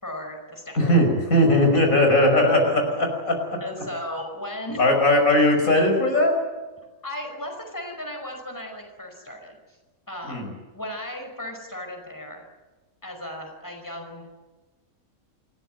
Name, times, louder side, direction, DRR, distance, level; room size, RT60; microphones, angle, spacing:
voice 1, 0.0-1.0 3.6-4.8 7.0-9.8 10.1-12.4 13.0-14.3, left 1 dB, 15° left, 3 dB, 5.3 m, -36 dB
voice 2, 0.8-3.6 4.8-6.4 10.3-10.5, left 1 dB, 75° left, 3 dB, 6.2 m, -19 dB
28.5 x 15.5 x 9.3 m, 1.2 s
omnidirectional pair, 1.5 m